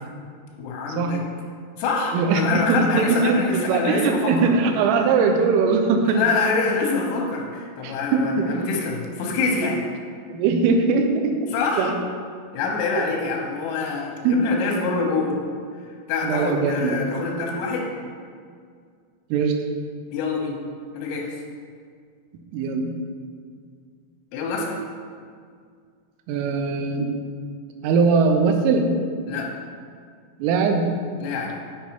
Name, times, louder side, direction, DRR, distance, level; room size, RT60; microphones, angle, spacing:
voice 1, 0.6-1.2 1.8-4.5 6.1-9.8 11.5-11.9 12.5-15.4 16.1-17.9 20.1-20.6 20.9-21.4 24.3-24.8 29.3-29.5 31.2-31.5, left 4 dB, 85° left, 0 dB, 3.6 m, -25 dB
voice 2, 2.1-6.2 7.8-8.6 10.3-11.4 11.8-11.9 13.0-13.1 14.2-14.4 16.2-17.3 19.3-19.5 22.5-22.9 26.3-27.1 27.8-28.9 30.4-30.9, right 4 dB, 80° right, 4 dB, 3.2 m, -21 dB
8.7 x 5.8 x 4.4 m, 2.1 s
omnidirectional pair, 6.0 m